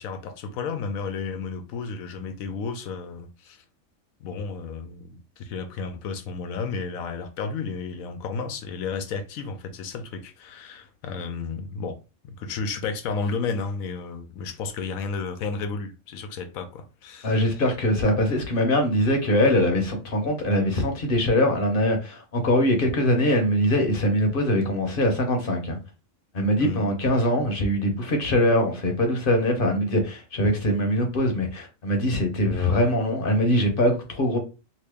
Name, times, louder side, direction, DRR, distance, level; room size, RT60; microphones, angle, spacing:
voice 1, 0.0-3.6 4.2-12.0 12.2-17.7 26.6-26.9, left 4 dB, 90° left, 1.1 m, -32 dB
voice 2, 17.2-25.8 26.3-34.4, left 1 dB, 45° left, 0.9 m, -22 dB
2.9 x 2.7 x 3.4 m
omnidirectional pair, 1.4 m